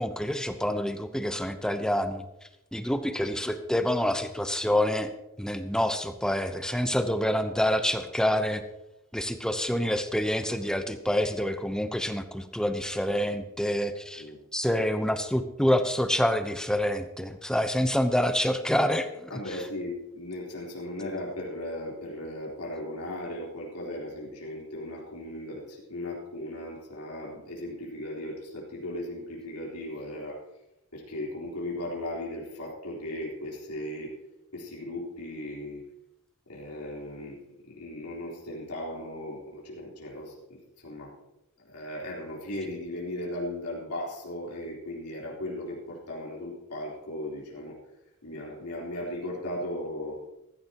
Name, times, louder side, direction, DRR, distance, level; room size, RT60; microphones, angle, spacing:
voice 1, 0.0-2.2 2.7-5.1 5.4-8.6 9.1-14.2 14.5-19.3, equal, 5° left, 8 dB, 0.8 m, -27 dB
voice 2, 19.3-30.4 30.9-34.1 34.5-35.8 36.5-41.1 41.6-47.8 48.2-50.2, left 1 dB, 90° left, -4 dB, 4.0 m, -37 dB
16.0 x 15.0 x 3.0 m, 0.93 s
head